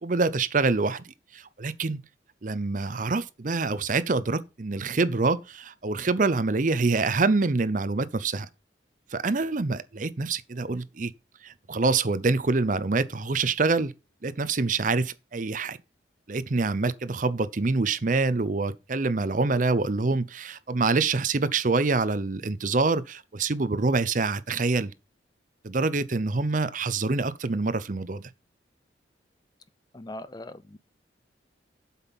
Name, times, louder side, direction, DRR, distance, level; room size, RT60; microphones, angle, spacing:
voice 1, 0.0-2.0 2.4-8.5 9.1-11.1 11.4-13.9 14.2-15.8 16.3-24.9 25.6-28.3, right 3 dB, 45° right, 0.6 m, -26 dB
voice 2, 29.9-30.8, left 1 dB, 20° left, 0.5 m, -40 dB
8.0 x 5.5 x 5.7 m
head